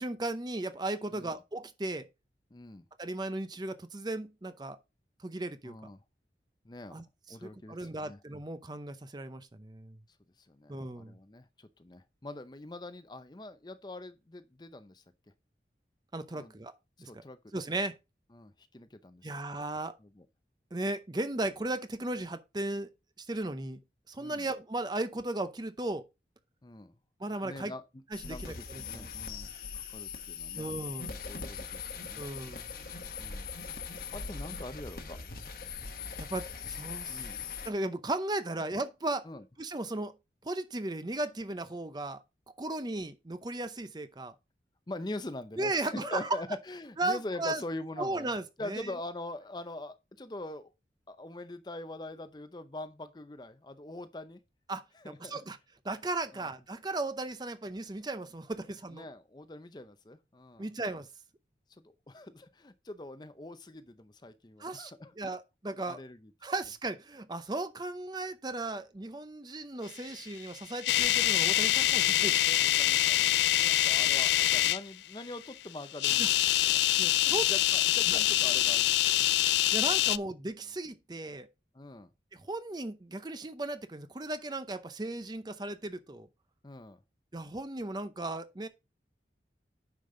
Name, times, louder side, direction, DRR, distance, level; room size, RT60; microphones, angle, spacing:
voice 1, 0.0-2.0 3.0-4.8 5.2-5.7 6.9-7.0 7.4-10.0 10.7-11.1 16.1-17.1 17.5-17.9 19.2-20.0 20.7-22.9 23.2-23.8 24.1-26.0 27.2-27.7 28.1-29.1 30.6-31.1 32.2-32.6 36.2-37.3 37.6-39.3 39.6-40.1 40.4-42.2 42.6-44.3 45.6-46.3 47.0-47.6 48.0-48.9 54.7-55.6 55.8-59.0 60.6-61.1 64.6-66.0 66.4-72.6 76.2-76.3 77.0-77.5 78.1-78.2 79.7-81.5 82.3-86.3 87.3-88.7, right 2 dB, 25° right, 0.6 m, -36 dB
voice 2, 2.5-2.8 5.6-6.0 6.6-7.0 7.3-8.2 10.4-15.0 16.3-16.5 17.0-17.4 18.3-19.6 20.0-20.3 24.2-24.5 26.6-27.0 27.3-27.8 28.2-30.7 31.2-32.2 33.2-35.2 37.0-37.5 38.6-38.7 39.2-39.4 44.9-48.3 48.6-50.7 51.1-54.4 54.9-55.4 56.3-56.5 58.6-60.7 61.7-65.3 65.9-66.3 72.1-76.8 77.2-79.6 80.0-80.2 81.7-82.1 86.6-87.0, left 1 dB, 25° left, 0.6 m, -44 dB
sound 1, 28.1-37.7, left 5 dB, 55° left, 1.1 m, -41 dB
sound 2, 70.4-74.8 75.9-80.2, left 14 dB, 80° left, 0.3 m, -25 dB
9.2 x 5.2 x 3.8 m
head